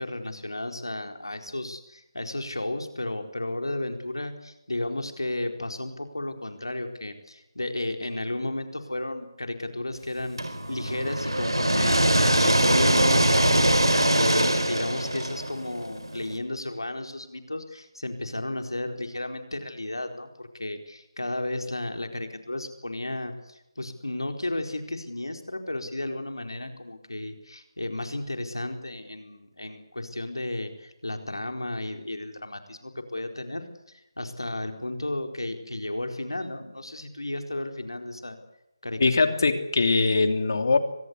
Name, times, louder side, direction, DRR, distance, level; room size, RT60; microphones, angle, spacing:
voice 1, 0.0-10.4 10.7-38.4 38.8-39.3, left 1 dB, 80° left, 5 dB, 4.4 m, -33 dB
sound 1, 10.4-16.3, right 1 dB, 90° right, 4.2 m, -22 dB
voice 2, 39.0-40.8, left 3 dB, 50° left, 8 dB, 3.0 m, -22 dB
24.5 x 19.5 x 8.4 m, 0.90 s
figure-of-eight pair, 160°, 2 cm